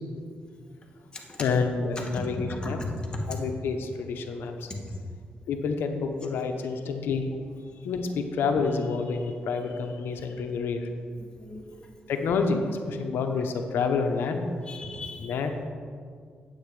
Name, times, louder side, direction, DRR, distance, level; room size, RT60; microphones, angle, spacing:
voice 1, 1.4-2.8 3.3-4.7 5.5-7.2 7.8-10.9 12.1-12.6 12.9-14.4 15.2-15.6, left 5 dB, 85° left, 5 dB, 0.9 m, -28 dB
voice 2, 2.6-3.4 11.2-11.6 14.6-15.3, left 2 dB, 25° left, 0 dB, 1.9 m, -36 dB
8.8 x 8.2 x 4.8 m, 2.1 s
cardioid pair, 90°, 4 cm